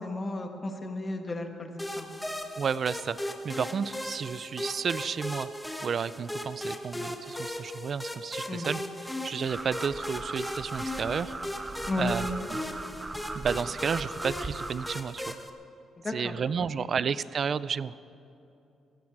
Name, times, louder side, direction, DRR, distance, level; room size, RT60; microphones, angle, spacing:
voice 1, 0.0-1.7 2.0-2.1 8.5-8.7 11.9-12.1 16.0-16.3 16.8-16.9, left 2 dB, 30° left, 5 dB, 1.7 m, -33 dB
sound 1, 1.8-15.5, left 1 dB, 5° left, 1.2 m, -37 dB
voice 2, 2.6-5.5 5.8-8.8 9.2-11.3 12.0-12.6 13.4-15.4 16.1-17.9, right 6 dB, 50° right, 17 dB, 0.5 m, -32 dB
sound 2, 9.5-14.9, right 2 dB, 20° right, 0.8 m, -39 dB
18.0 x 15.0 x 4.8 m, 2.7 s
cardioid pair, 90°, 0 cm